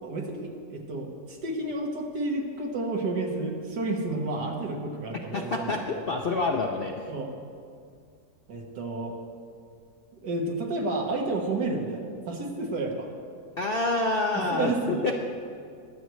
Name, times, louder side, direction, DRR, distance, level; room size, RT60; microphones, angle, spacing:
voice 1, 0.0-6.0 7.1-7.3 8.5-9.2 10.2-13.1 14.3-15.1, right 2 dB, 85° right, 1 dB, 2.0 m, -31 dB
voice 2, 5.3-7.1 13.6-15.1, left 3 dB, 60° left, 1 dB, 0.6 m, -27 dB
21.5 x 8.1 x 3.2 m, 2.3 s
omnidirectional pair, 1.8 m